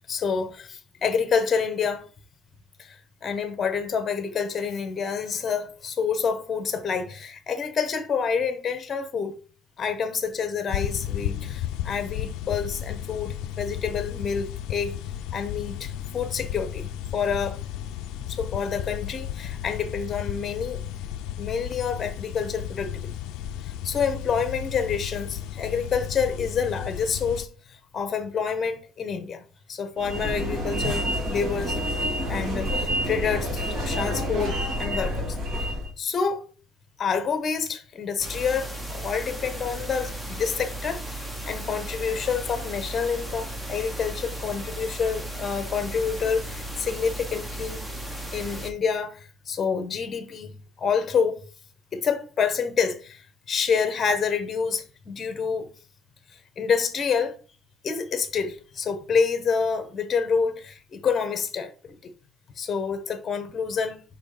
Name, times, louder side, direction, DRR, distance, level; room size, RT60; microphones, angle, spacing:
voice 1, 0.1-2.1 2.8-9.4 9.8-15.0 15.3-16.9 17.1-17.6 18.3-20.8 21.4-23.1 23.8-35.7 36.0-36.5 37.0-47.8 48.3-51.4 51.9-53.2 53.5-55.7 56.6-57.4 57.8-62.1 62.6-64.0, left 6 dB, 25° left, 1.1 m, -28 dB
sound 1, 10.7-27.5, left 11 dB, 75° left, 0.4 m, -34 dB
sound 2, 30.0-35.9, equal, 50° right, 2.6 m, -28 dB
sound 3, 38.2-48.7, right 1 dB, 10° right, 0.9 m, -35 dB
5.6 x 4.2 x 5.0 m
cardioid pair, 160°, 0 cm